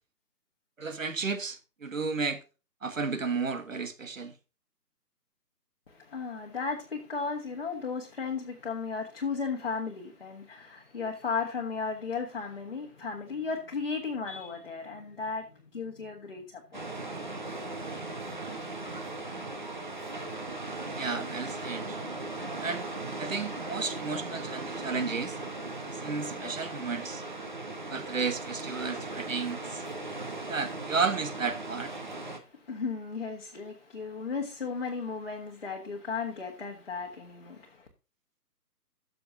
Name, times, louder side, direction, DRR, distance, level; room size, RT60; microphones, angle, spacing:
voice 1, 0.8-2.4 2.8-4.3 21.0-22.0 22.6-22.8 23.2-25.4 25.9-27.2 27.9-29.8 30.5-31.9, right 4 dB, 55° right, 1.6 m, -33 dB
voice 2, 5.9-16.9 32.0-37.9, left 5 dB, 35° left, 1.5 m, -35 dB
sound 1, 16.7-32.4, right 2 dB, 30° right, 1.2 m, -38 dB
14.0 x 6.8 x 2.7 m
hypercardioid pair, 180°, 48 cm